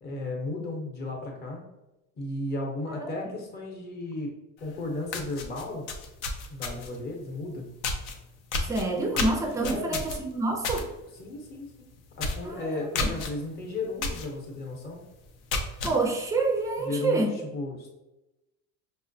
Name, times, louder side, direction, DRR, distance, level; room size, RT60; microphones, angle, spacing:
voice 1, 0.0-1.6 2.2-4.3 4.6-5.8 6.5-7.7 9.6-10.0 11.2-11.9 12.2-15.0 16.8-17.9, left 2 dB, 30° left, 1 dB, 0.8 m, -34 dB
voice 2, 3.0-3.3 8.6-10.9 12.4-13.1 15.8-17.3, right 2 dB, 10° right, 2 dB, 0.3 m, -28 dB
sound 1, 4.7-4.8 5.1-7.0 7.8-8.1 8.5-10.8 11.2-11.4 11.7-11.8 12.2-12.5 12.9-13.3 14.0-14.3 14.7-14.8 15.3-15.9, left 3 dB, 90° left, 0.7 m, -31 dB
5.7 x 2.0 x 2.6 m, 0.98 s
cardioid pair, 140°, 35 cm